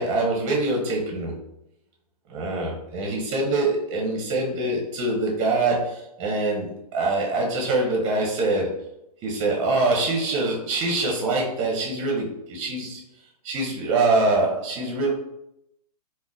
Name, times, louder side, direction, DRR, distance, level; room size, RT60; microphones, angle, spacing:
voice 1, 0.0-1.4 2.3-8.9 9.2-13.0 13.4-15.1, right 2 dB, 30° right, -1 dB, 0.6 m, -24 dB
3.6 x 2.1 x 2.5 m, 0.82 s
hypercardioid pair, 135°, 21 cm